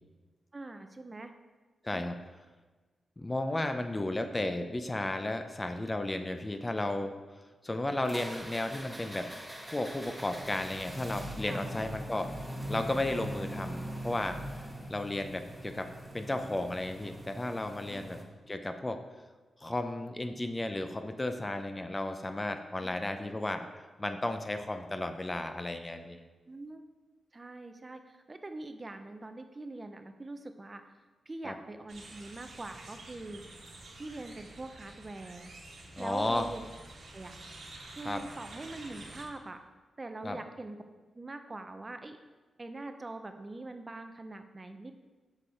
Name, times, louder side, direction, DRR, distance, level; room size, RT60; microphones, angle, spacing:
voice 1, 0.5-1.3 1.9-2.1 11.5-11.6 17.9-18.1 22.8-23.0 26.5-26.8 27.3-30.8 31.3-33.4 33.9-35.5 36.0-36.7 37.1-37.3 38.0-39.6 40.0-40.8 41.1-42.2 42.6-44.9, right 2 dB, 30° right, 7 dB, 0.5 m, -43 dB
voice 2, 1.8-2.2 3.2-7.1 7.6-9.3 9.7-12.3 12.7-18.2 18.5-19.0 19.6-23.7 24.0-26.2 31.4-31.5 35.9-36.5 38.0-38.2 40.2-40.4, left 1 dB, 20° left, 7 dB, 0.5 m, -34 dB
sound 1, 8.0-18.2, equal, 5° right, 1.1 m, -42 dB
sound 2, 31.9-39.2, right 2 dB, 65° right, 1.3 m, -49 dB
6.6 x 4.9 x 4.3 m, 1.3 s
cardioid pair, 75°, 0 cm